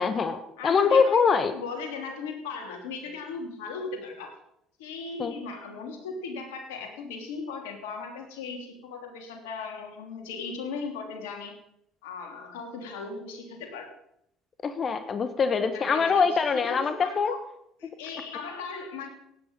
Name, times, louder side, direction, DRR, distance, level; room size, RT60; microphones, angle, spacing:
voice 1, 0.0-1.6 5.2-5.3 14.6-17.3, left 5 dB, 40° left, 10 dB, 1.3 m, -24 dB
voice 2, 0.6-4.3 4.8-11.6 12.0-13.9 15.5-17.4 17.8-19.1, left 4 dB, 80° left, 3 dB, 3.0 m, -38 dB
17.0 x 9.3 x 5.5 m, 0.76 s
hypercardioid pair, 65°, 0 cm